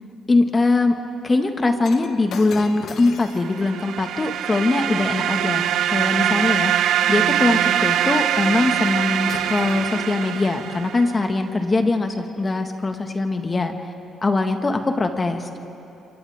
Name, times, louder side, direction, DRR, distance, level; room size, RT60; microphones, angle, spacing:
voice 1, 0.3-1.0 1.2-13.9 14.2-15.6, left 3 dB, 30° left, 5 dB, 1.7 m, -22 dB
Shatter, 1.9-6.2 8.8-9.0 9.3-10.8 11.5-11.7, left 6 dB, 70° left, 1.2 m, -41 dB
sound 1, 3.4-11.2, right 11 dB, 80° right, 0.6 m, -23 dB
28.0 x 27.0 x 3.6 m, 2.8 s
cardioid pair, 90°, 0 cm